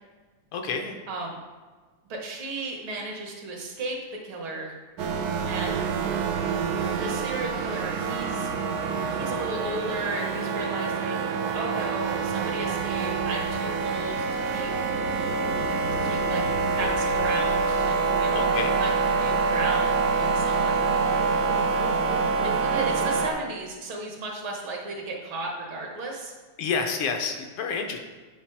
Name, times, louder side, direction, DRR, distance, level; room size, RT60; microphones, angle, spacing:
voice 1, 0.5-1.0 18.3-18.8 26.6-28.0, left 5 dB, 80° left, 3 dB, 1.7 m, -29 dB
voice 2, 1.1-1.4 2.1-4.0 4.2-4.8 5.5-5.8 7.0-8.5 9.1-14.7 15.9-16.4 16.8-18.4 18.8-20.9 22.4-26.3, right 2 dB, 70° right, 1 dB, 1.9 m, -34 dB
sound 1, 5.0-23.3, right 4 dB, 85° right, 0.8 m, -26 dB
8.7 x 4.0 x 4.6 m, 1.4 s
omnidirectional pair, 2.4 m